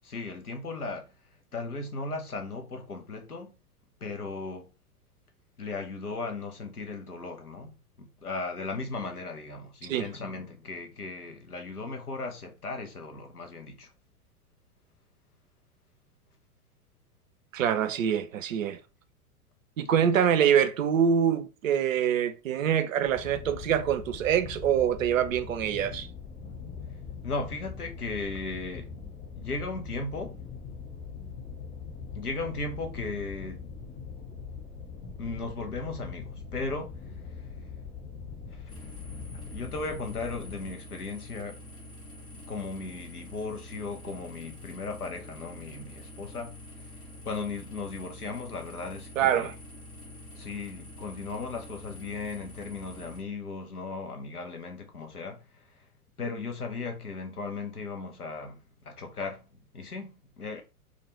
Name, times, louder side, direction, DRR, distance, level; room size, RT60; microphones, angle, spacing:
voice 1, 0.0-1.1 1.5-3.5 4.0-4.7 5.6-7.7 8.0-13.9 27.2-28.9 29.4-30.4 32.2-33.6 35.2-36.9 37.4-37.5 38.5-38.9 39.5-41.6 42.3-46.9 47.2-49.5 50.3-55.9 56.2-59.4 59.7-60.6, left 3 dB, 90° left, 0.7 m, -36 dB
voice 2, 17.5-18.8 19.8-26.1 49.2-49.5, right 8 dB, 65° right, 0.5 m, -25 dB
sound 1, 23.0-40.7, left 6 dB, 45° left, 1.1 m, -42 dB
sound 2, 38.7-53.2, left 1 dB, 10° left, 0.4 m, -46 dB
2.4 x 2.2 x 3.0 m
figure-of-eight pair, 95°, 44 cm